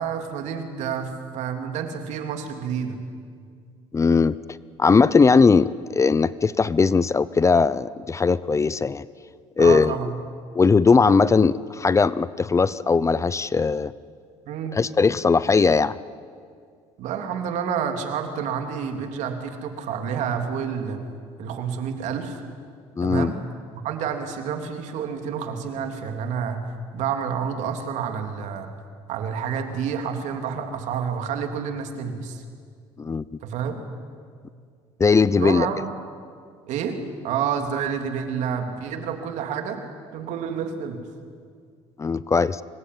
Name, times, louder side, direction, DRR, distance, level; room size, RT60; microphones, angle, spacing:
voice 1, 0.0-3.0 9.6-10.1 14.5-14.8 17.0-21.0 21.4-22.4 23.0-23.4 23.7-26.6 26.9-28.7 29.1-32.4 33.4-33.8 35.4-35.9 36.7-37.0 37.2-39.8 40.1-41.1, right 7 dB, 75° right, 5 dB, 3.3 m, -29 dB
voice 2, 3.9-4.4 4.8-9.1 9.6-10.1 10.5-13.9 14.7-16.0 23.0-23.3 33.0-33.4 35.0-35.7 42.0-42.6, left 4 dB, 25° left, 18 dB, 0.7 m, -19 dB
25.5 x 21.5 x 9.7 m, 2.1 s
cardioid pair, 100°, 12 cm